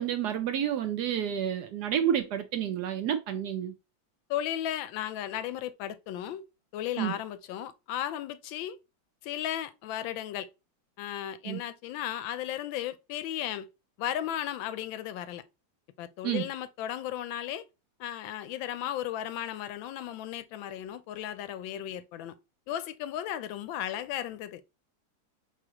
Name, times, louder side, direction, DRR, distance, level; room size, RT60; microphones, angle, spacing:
voice 1, 0.0-3.7 7.0-7.2 11.4-11.6 16.2-16.5, right 9 dB, 70° right, 1.1 m, -29 dB
voice 2, 4.3-6.4 6.7-8.8 9.2-10.5 11.0-13.7 14.0-15.4 16.0-17.6 18.0-22.4 22.7-24.6, left 11 dB, 85° left, 1.3 m, -35 dB
5.0 x 3.7 x 2.8 m
omnidirectional pair, 2.1 m